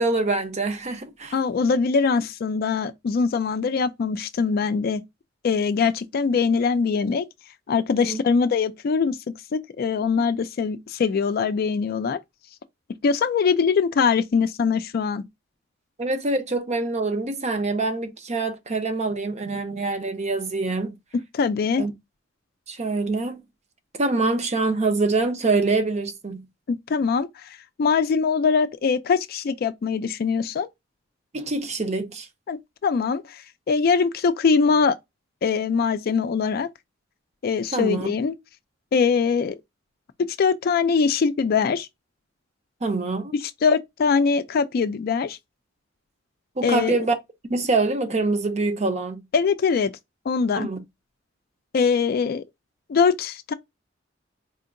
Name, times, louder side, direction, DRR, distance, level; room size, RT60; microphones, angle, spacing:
voice 1, 0.0-1.3 8.0-8.2 16.0-20.9 21.8-21.9 22.7-23.5 24.0-26.5 31.3-32.3 37.7-38.1 42.8-43.3 46.6-47.2 47.5-49.2 50.6-50.8, right 3 dB, 35° right, 0.7 m, -25 dB
voice 2, 1.3-5.0 5.4-7.2 7.7-9.2 9.5-12.2 13.0-15.2 21.1-21.8 26.7-30.7 32.5-35.0 35.4-36.7 37.4-38.3 38.9-39.6 40.2-41.9 43.6-45.4 46.6-47.0 49.3-49.9 50.3-50.7 51.7-52.4 52.9-53.5, left 5 dB, 50° left, 0.3 m, -22 dB
4.3 x 2.7 x 2.5 m
head